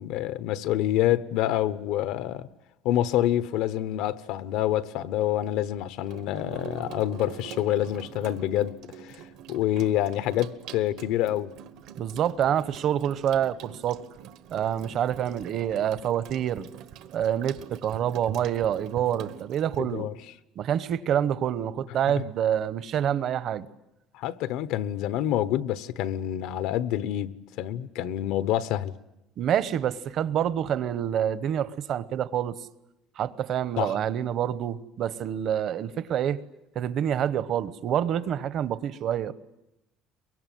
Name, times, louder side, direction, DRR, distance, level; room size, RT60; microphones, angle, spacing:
voice 1, 0.0-2.5 2.8-11.5 19.8-20.1 22.1-22.2 24.1-28.9 33.8-34.0, left 12 dB, 75° left, 1.1 m, -27 dB
Water tap faucet / Sink (filling or washing), 6.0-19.8, right 10 dB, 65° right, 1.3 m, -45 dB
voice 2, 12.0-14.0 14.5-16.7 17.1-20.1 20.6-23.7 29.4-32.6 33.2-36.4 36.7-39.3, right 9 dB, 45° right, 1.0 m, -27 dB
23.5 x 22.5 x 9.3 m
cardioid pair, 155°, 0 cm